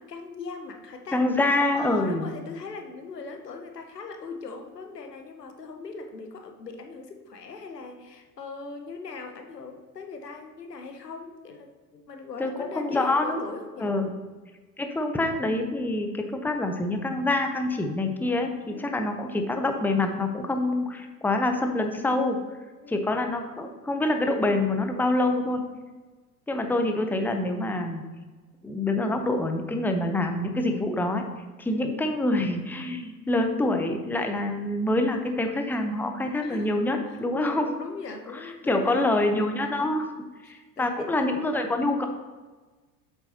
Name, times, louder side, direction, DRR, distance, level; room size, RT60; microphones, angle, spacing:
voice 1, 0.0-1.2 1.8-13.9 18.7-19.0 22.8-23.0 31.7-31.9 36.4-36.8 37.1-39.3 40.4-41.4, left 4 dB, 85° left, 5 dB, 1.0 m, -40 dB
voice 2, 1.1-2.3 12.4-13.4 13.8-14.1 14.8-22.4 22.9-25.6 26.5-28.0 28.6-31.2 31.6-37.7 38.4-40.1 40.4-42.1, left 2 dB, 5° left, 5 dB, 0.8 m, -26 dB
8.0 x 7.8 x 3.0 m, 1.3 s
figure-of-eight pair, 75°, 47 cm